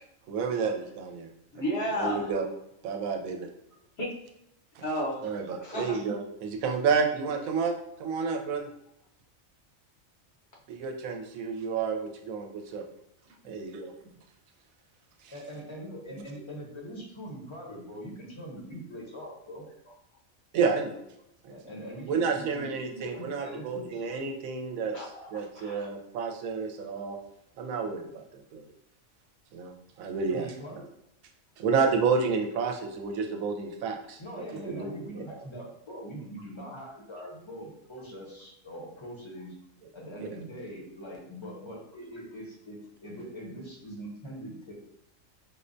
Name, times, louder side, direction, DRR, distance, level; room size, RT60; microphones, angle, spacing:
voice 1, 0.3-1.3 1.9-2.5 2.8-3.5 4.8-4.9 5.2-7.7 8.0-8.7 10.7-12.8 13.4-13.9 15.2-15.3 20.5-21.0 21.5-21.6 22.1-24.9 25.3-27.2 27.6-28.6 29.5-30.5 31.6-34.2 34.6-34.9 40.2-40.3, right 5 dB, 80° right, 3 dB, 1.0 m, -30 dB
voice 2, 1.5-2.3 4.0-4.1 4.8-5.2 5.5-6.0 24.9-25.9, equal, 60° left, -3 dB, 0.9 m, -32 dB
voice 3, 15.3-19.6 21.5-24.0 30.3-30.8 34.2-39.5 39.9-44.7, equal, 30° left, -2 dB, 0.6 m, -42 dB
5.1 x 2.1 x 2.5 m, 0.79 s
omnidirectional pair, 1.4 m